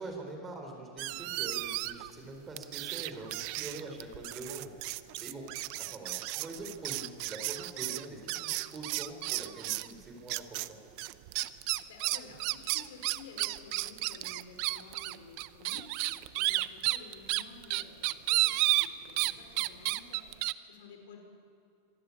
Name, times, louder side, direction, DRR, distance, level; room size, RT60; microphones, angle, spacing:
voice 1, 0.0-4.9 5.2-5.5 5.8-10.8, right 2 dB, 15° right, 3 dB, 4.6 m, -44 dB
sound 1, 1.0-2.1 2.6-9.9 10.3-10.7 11.0-19.3 19.6-20.5, right 20 dB, 50° right, 0.7 m, -32 dB
voice 2, 11.5-21.2, left 5 dB, 85° left, 4 dB, 5.1 m, -52 dB
26.0 x 19.0 x 8.7 m, 2.5 s
supercardioid pair, 145°, 0 cm